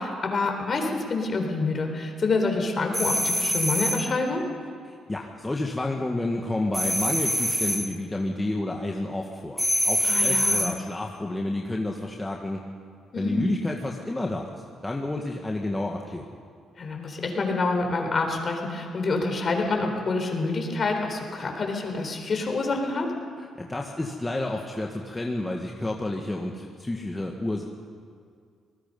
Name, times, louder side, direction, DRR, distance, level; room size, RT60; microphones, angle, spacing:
voice 1, 0.0-4.4 10.1-10.7 13.1-13.5 16.8-23.1, left 3 dB, 40° left, 3 dB, 4.1 m, -27 dB
sound 1, 2.9-4.1 6.7-7.9 9.6-10.8, equal, 5° right, 2.1 m, -25 dB
voice 2, 4.8-12.6 13.2-14.5 14.8-16.4 23.6-27.6, left 2 dB, 15° left, 0 dB, 1.7 m, -30 dB
26.5 x 19.5 x 5.5 m, 2.1 s
cardioid pair, 90°, 0 cm